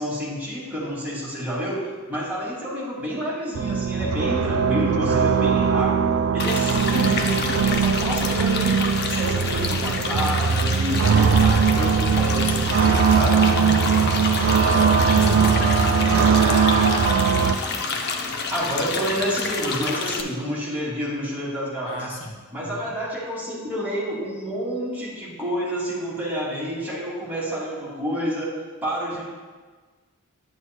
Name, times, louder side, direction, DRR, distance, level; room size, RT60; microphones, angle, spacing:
voice 1, 0.0-6.1 6.3-13.4 18.5-22.0 22.5-28.5 28.8-29.2, equal, 10° right, -7 dB, 2.5 m, -29 dB
sound 1, 3.5-17.6, right 6 dB, 70° right, 0.4 m, -20 dB
sound 2, 6.4-20.2, left 4 dB, 50° left, 0.6 m, -29 dB
voice 2, 13.6-16.5 21.8-22.3 22.6-22.9, equal, 65° left, 0 dB, 1.2 m, -33 dB
9.6 x 8.0 x 2.2 m, 1.4 s
head